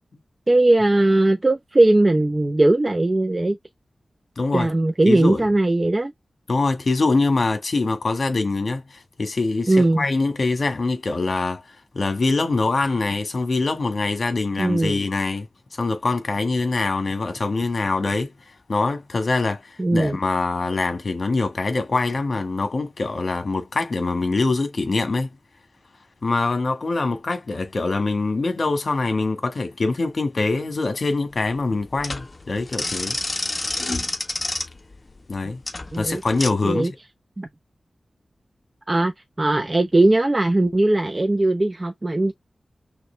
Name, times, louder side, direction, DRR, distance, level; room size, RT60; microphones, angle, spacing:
voice 1, 0.5-3.6 4.5-6.1 9.7-10.0 14.6-15.0 19.8-20.2 35.9-36.2 36.6-36.9 37.4-37.5 38.9-39.1 39.4-42.3, right 2 dB, 35° right, 0.9 m, -19 dB
voice 2, 4.4-4.7 5.1-5.4 6.5-15.5 15.8-18.3 18.7-25.3 26.2-33.2 35.3-35.6 36.0-37.0, left 3 dB, 60° left, 1.8 m, -24 dB
sound 1, 31.3-36.5, left 2 dB, 40° left, 1.3 m, -29 dB
6.0 x 2.6 x 3.4 m
cardioid pair, 50°, 0 cm